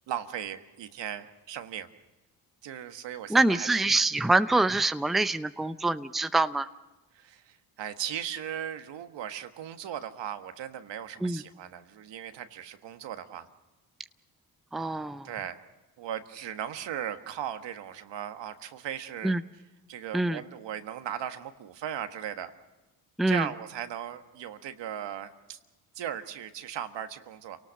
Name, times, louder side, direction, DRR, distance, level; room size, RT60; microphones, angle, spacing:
voice 1, 0.1-1.9 2.6-3.8 7.1-13.5 15.2-15.6 16.0-19.3 19.9-22.5 23.3-25.6 25.9-27.6, right 10 dB, 70° right, 8 dB, 1.5 m, -37 dB
voice 2, 3.3-6.7 11.2-11.4 14.7-15.3 19.2-19.4 20.1-20.4 23.2-23.5, right 2 dB, ahead, 11 dB, 0.7 m, -25 dB
29.0 x 18.5 x 6.5 m, 1.1 s
supercardioid pair, 65°, 44 cm